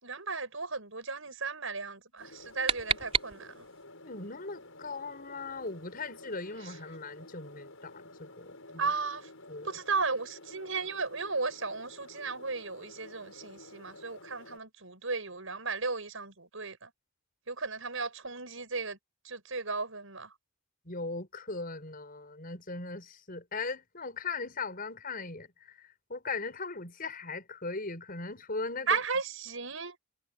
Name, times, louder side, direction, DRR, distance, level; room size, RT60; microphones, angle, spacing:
voice 1, 0.0-3.6 8.8-9.3 9.6-16.9 17.5-19.0 19.2-20.3 28.9-29.9, right 4 dB, 70° right, 6.7 m, -35 dB
sound 1, 2.2-14.6, left 2 dB, 75° left, 7.4 m, -51 dB
sound 2, 2.2-3.8, right 5 dB, 30° right, 3.9 m, -33 dB
voice 2, 4.0-8.9 9.5-9.7 20.9-29.0, left 3 dB, 45° left, 6.0 m, -39 dB
head